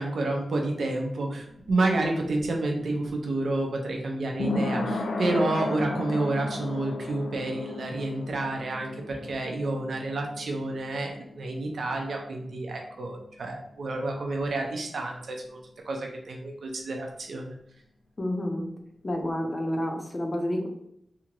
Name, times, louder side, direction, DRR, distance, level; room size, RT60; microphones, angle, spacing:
voice 1, 0.0-17.5, right 2 dB, 75° right, 1 dB, 0.5 m, -29 dB
sound 1, 1.3-12.8 13.1-13.2, left 2 dB, 80° left, 0.3 m, -35 dB
voice 2, 18.2-18.6 19.0-20.7, left 1 dB, 35° left, 2 dB, 0.6 m, -29 dB
2.8 x 2.5 x 2.9 m, 0.74 s
wide cardioid pair, 100°, 0 cm